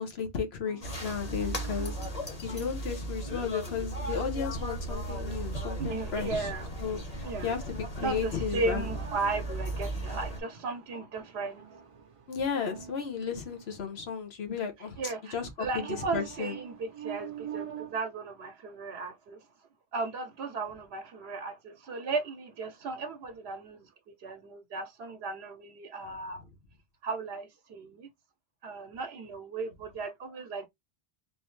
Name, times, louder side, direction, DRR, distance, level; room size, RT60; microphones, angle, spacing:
voice 1, 0.0-2.0 2.4-6.5 6.8-8.9 12.3-15.7 16.1-16.5, left 6 dB, 85° left, 1.2 m, -34 dB
sound 1, 0.7-2.8 3.9-14.0 15.7-18.0, right 10 dB, 40° right, 0.5 m, -47 dB
sound 2, 0.8-10.4, right 1 dB, 40° left, 1.2 m, -36 dB
voice 2, 5.5-6.7 7.2-7.5 8.0-11.6 15.0-19.4 19.9-23.9 24.2-26.4 27.0-28.1 28.6-30.7, right 3 dB, 80° right, 0.9 m, -36 dB
3.8 x 2.7 x 3.1 m
omnidirectional pair, 1.0 m